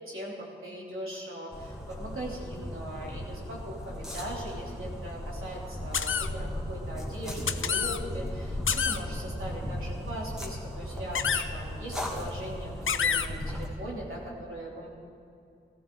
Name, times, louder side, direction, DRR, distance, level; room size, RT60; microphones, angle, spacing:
voice 1, 0.0-14.9, right 1 dB, 85° right, -4 dB, 3.3 m, -40 dB
sound 1, 1.5-13.7, left 1 dB, ahead, 2.1 m, -37 dB
sound 2, 5.9-6.3 7.5-8.0 8.7-9.0 11.2-11.4 12.9-13.3, left 7 dB, 80° left, 0.5 m, -27 dB
17.0 x 15.0 x 3.9 m, 2.5 s
wide cardioid pair, 55°, 20 cm